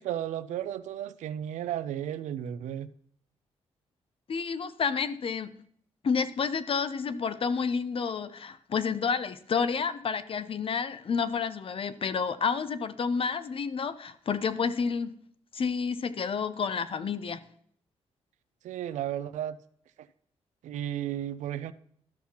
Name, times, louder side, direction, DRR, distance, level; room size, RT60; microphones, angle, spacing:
voice 1, 0.0-2.9 18.6-19.6 20.6-21.7, right 11 dB, 85° right, 0.4 m, -34 dB
voice 2, 4.3-5.5 6.0-15.2 15.5-17.4, left 5 dB, 50° left, 0.6 m, -30 dB
13.0 x 5.7 x 2.9 m
supercardioid pair, 55°, 12 cm